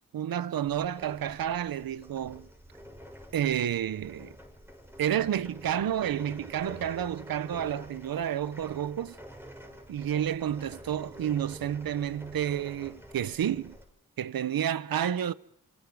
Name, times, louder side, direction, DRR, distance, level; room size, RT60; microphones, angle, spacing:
voice 1, 0.1-2.5 3.3-4.3 5.0-9.1 9.9-13.8 14.2-15.3, right 10 dB, 80° right, 0.8 m, -30 dB
sound 1, 0.6-13.8, equal, 5° right, 6.8 m, -48 dB
29.5 x 26.5 x 4.8 m
cardioid pair, 50°, 34 cm